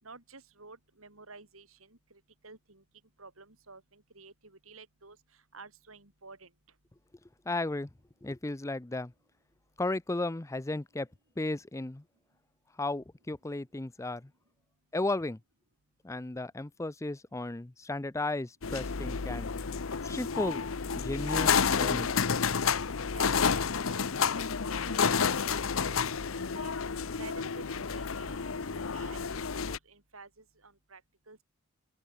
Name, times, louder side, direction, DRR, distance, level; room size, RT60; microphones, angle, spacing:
voice 1, 0.0-2.8 3.2-5.2 5.5-6.5 23.1-25.6 25.9-26.0 26.5-26.7 27.2-28.4 28.7-31.0 31.3-31.4, right 3 dB, 85° right, 5.9 m, -51 dB
voice 2, 7.5-7.9 8.2-9.1 9.8-11.1 11.4-12.0 12.8-14.3 14.9-15.4 16.0-19.5 20.0-20.6 20.9-22.2, left 2 dB, 15° left, 0.5 m, -34 dB
sound 1, 18.6-29.8, left 6 dB, 75° left, 0.8 m, -30 dB
open air
head